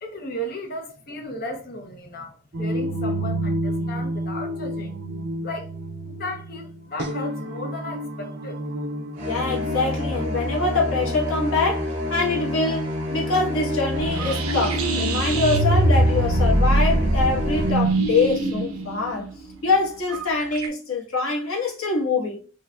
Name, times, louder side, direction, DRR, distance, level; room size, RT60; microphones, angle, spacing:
voice 1, 0.0-4.9 5.4-5.7 6.1-8.6, left 1 dB, 45° left, 0.6 m, -35 dB
sound 1, 2.5-12.4, right 1 dB, 50° right, 0.4 m, -31 dB
sound 2, 9.1-17.7, left 1 dB, 35° right, 1.6 m, -28 dB
voice 2, 9.2-19.3 19.6-22.4, left 3 dB, 80° left, 1.2 m, -24 dB
sound 3, 13.9-20.7, right 2 dB, 80° right, 0.7 m, -23 dB
4.5 x 2.3 x 2.2 m
head